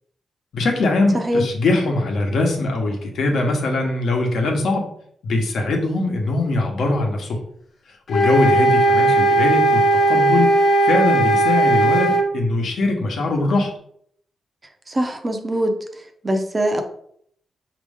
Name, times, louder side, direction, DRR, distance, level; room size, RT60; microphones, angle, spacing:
voice 1, 0.5-4.9 5.2-7.4 8.1-10.5 10.8-13.7, left 2 dB, 75° left, 2 dB, 1.0 m, -21 dB
voice 2, 1.1-1.5 14.9-15.8 16.2-16.8, equal, 25° right, 5 dB, 0.6 m, -22 dB
sound 1, 8.1-12.3, right 2 dB, 50° left, 0.6 m, -17 dB
5.2 x 2.9 x 3.5 m, 0.66 s
wide cardioid pair, 135°, 0 cm